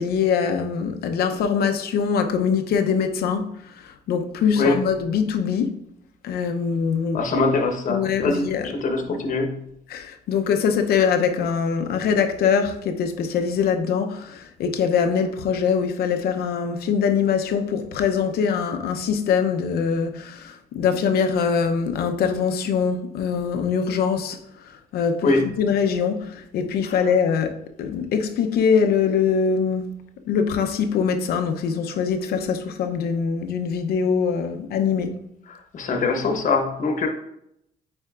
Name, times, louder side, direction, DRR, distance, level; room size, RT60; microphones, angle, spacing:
voice 1, 0.0-5.8 6.2-7.2 7.9-8.7 9.9-24.4 24.9-25.3 25.6-27.5 27.8-29.9 30.3-35.1, left 6 dB, 65° left, 0.7 m, -23 dB
voice 2, 7.1-9.6 25.2-25.5 26.8-27.1 35.5-37.1, left 3 dB, 50° left, 1.1 m, -23 dB
9.0 x 4.3 x 2.5 m
cardioid pair, 110°, 17 cm